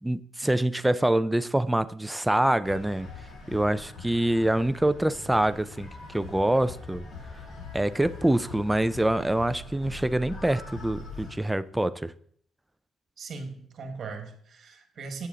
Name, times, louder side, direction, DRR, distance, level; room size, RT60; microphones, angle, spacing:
voice 1, 0.0-3.1 3.5-7.1 7.7-12.1, right 1 dB, 10° right, 0.4 m, -25 dB
sound 1, 2.6-11.4, left 3 dB, 50° left, 2.5 m, -43 dB
voice 2, 13.2-15.3, right 4 dB, 60° right, 1.5 m, -39 dB
8.2 x 7.1 x 3.7 m
cardioid pair, 90°, 0 cm